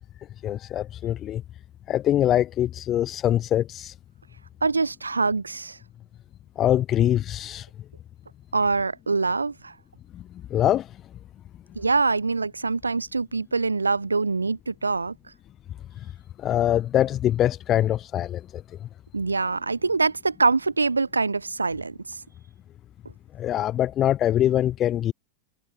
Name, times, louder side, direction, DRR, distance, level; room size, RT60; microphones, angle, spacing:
voice 1, 0.4-1.4 1.9-3.9 6.6-7.7 10.1-10.2 10.5-10.9 16.4-18.6 23.4-25.1, left 12 dB, 30° left, 0.4 m, -23 dB
voice 2, 4.6-5.8 8.5-9.8 11.8-15.1 19.1-22.2, right 4 dB, 80° right, 0.6 m, -24 dB
figure-of-eight pair, 90°, 0 cm